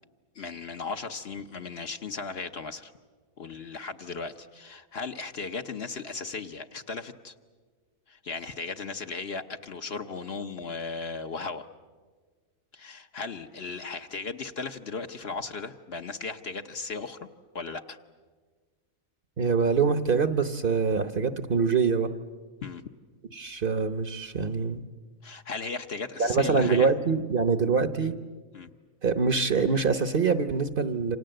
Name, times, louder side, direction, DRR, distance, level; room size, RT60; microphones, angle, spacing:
voice 1, 0.3-2.9 3.4-7.3 8.1-11.7 12.7-17.2 17.5-18.0 22.6-22.8 25.2-26.9 28.5-28.7, left 4 dB, 50° left, 6 dB, 1.2 m, -36 dB
voice 2, 19.4-22.1 23.3-24.8 26.2-28.2 29.0-31.2, right 5 dB, 45° right, 11 dB, 1.0 m, -24 dB
28.5 x 26.5 x 7.8 m, 1.4 s
omnidirectional pair, 1.4 m